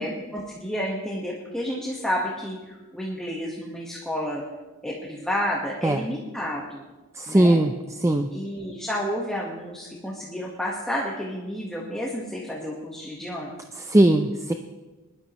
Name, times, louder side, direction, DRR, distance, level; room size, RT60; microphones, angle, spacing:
voice 1, 0.0-4.4 4.8-6.8 7.3-7.6 8.3-13.5, equal, 5° left, -4 dB, 1.3 m, -30 dB
voice 2, 7.1-8.3 13.7-14.5, right 1 dB, 15° right, 6 dB, 0.4 m, -20 dB
21.0 x 12.0 x 3.1 m, 1.2 s
head